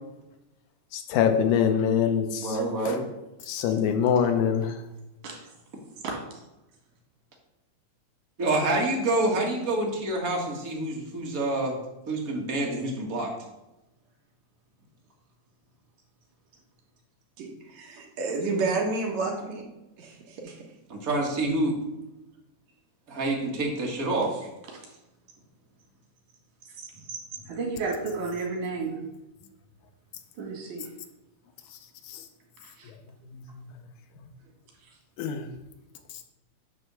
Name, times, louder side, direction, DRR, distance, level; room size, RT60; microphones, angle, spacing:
voice 1, 1.1-2.2 3.5-4.7 35.2-35.4, left 8 dB, 85° left, 7 dB, 2.2 m, -23 dB
voice 2, 2.4-3.0 8.4-11.7 12.1-13.3 20.9-21.7 23.1-24.5, right 2 dB, 35° right, -1 dB, 1.6 m, -27 dB
voice 3, 17.4-19.7 20.0-20.6, right 3 dB, 65° right, 0 dB, 2.5 m, -30 dB
voice 4, 26.8-27.2 27.5-28.9 30.4-30.9 32.6-32.9, right 4 dB, 90° right, -2 dB, 3.6 m, -33 dB
9.4 x 3.5 x 6.8 m, 0.95 s
omnidirectional pair, 3.4 m